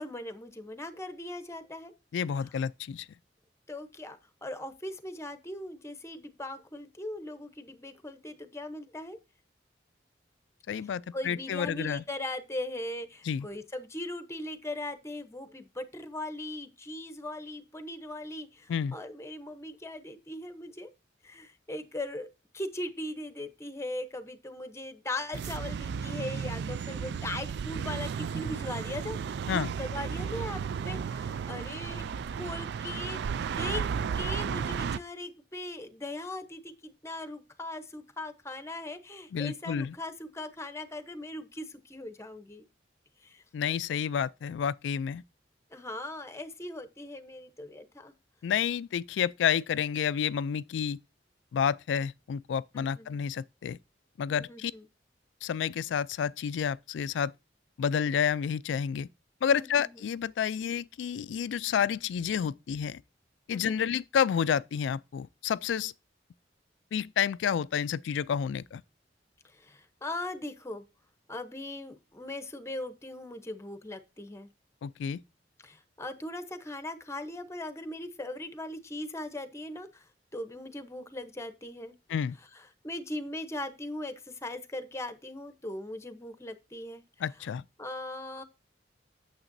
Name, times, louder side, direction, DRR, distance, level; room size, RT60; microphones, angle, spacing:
voice 1, 0.0-1.9 3.7-9.2 11.1-20.9 21.2-22.3 22.5-29.2 29.5-33.2 33.5-42.7 43.2-43.4 45.7-48.1 52.7-53.2 54.3-54.9 59.5-59.9 63.5-63.9 69.4-70.8 71.3-74.5 75.6-82.0 82.8-87.0 87.8-88.4, left 1 dB, 15° left, 0.8 m, -39 dB
voice 2, 2.1-3.1 10.7-12.0 13.2-13.5 18.7-18.9 29.5-29.7 39.3-40.0 43.5-45.2 48.4-51.0 51.5-53.8 54.2-54.7 55.4-57.3 57.8-59.1 59.4-63.0 63.5-65.9 66.9-68.8 74.8-75.2 82.1-82.4 87.2-87.6, left 7 dB, 80° left, 0.3 m, -30 dB
sound 1, 25.3-35.0, right 6 dB, 65° right, 0.3 m, -34 dB
8.8 x 7.3 x 2.6 m
head